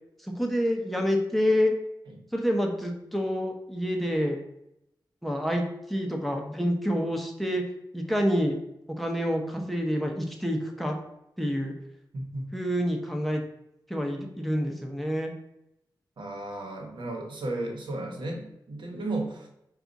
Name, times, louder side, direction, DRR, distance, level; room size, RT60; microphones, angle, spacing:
voice 1, 0.2-1.7 2.3-4.4 5.2-7.6 7.9-8.6 9.0-10.9 11.4-11.7 12.5-13.4 13.9-15.3, equal, ahead, 2 dB, 0.7 m, -27 dB
voice 2, 16.2-19.5, right 2 dB, 75° right, 1 dB, 1.0 m, -34 dB
4.8 x 2.4 x 3.9 m, 0.81 s
wide cardioid pair, 135°, 8 cm